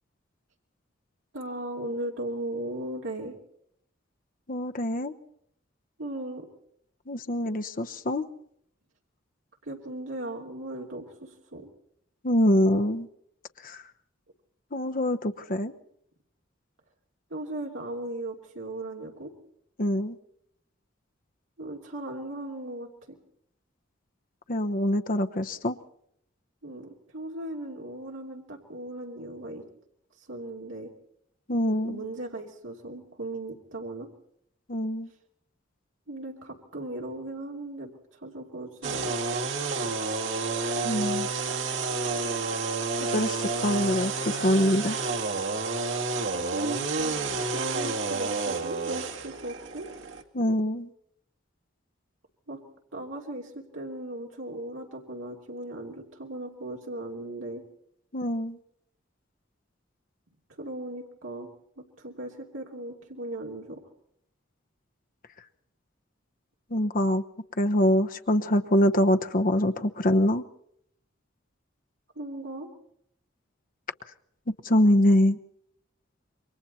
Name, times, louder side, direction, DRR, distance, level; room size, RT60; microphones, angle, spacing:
voice 1, 1.3-3.4 6.0-6.5 9.6-11.7 17.3-19.3 21.6-23.2 26.6-29.6 30.2-30.9 31.9-34.1 36.1-39.1 46.5-47.1 47.5-49.9 52.5-52.6 52.9-57.6 60.6-61.5 61.8-63.8 72.2-72.7, right 1 dB, 85° right, -1 dB, 3.0 m, -37 dB
voice 2, 4.5-5.1 7.1-8.2 12.2-13.1 13.6-13.8 14.7-15.7 19.8-20.1 24.5-25.8 31.5-32.0 34.7-35.1 40.8-41.3 43.1-45.0 50.3-50.9 58.1-58.6 66.7-67.2 67.6-70.4 74.6-75.4, left 1 dB, 45° left, 8 dB, 1.0 m, -24 dB
sound 1, 38.8-50.2, right 4 dB, 70° right, 2.2 m, -30 dB
28.0 x 24.0 x 4.2 m, 0.70 s
head